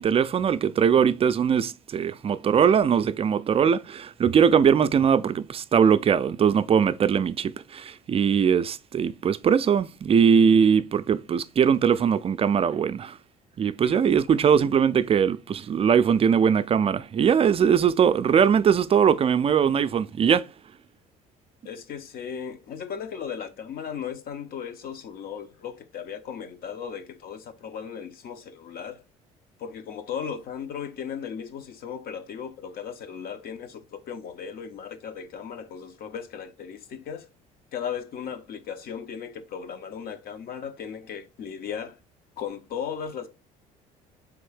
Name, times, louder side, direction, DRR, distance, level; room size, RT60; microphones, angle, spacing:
voice 1, 0.0-13.2 13.6-20.5, right 7 dB, 35° right, 0.4 m, -21 dB
voice 2, 13.8-14.3 21.6-29.0 29.6-37.3 37.7-42.0 42.4-43.3, left 7 dB, 60° left, 0.7 m, -36 dB
3.8 x 3.5 x 3.3 m
supercardioid pair, 75°, 18 cm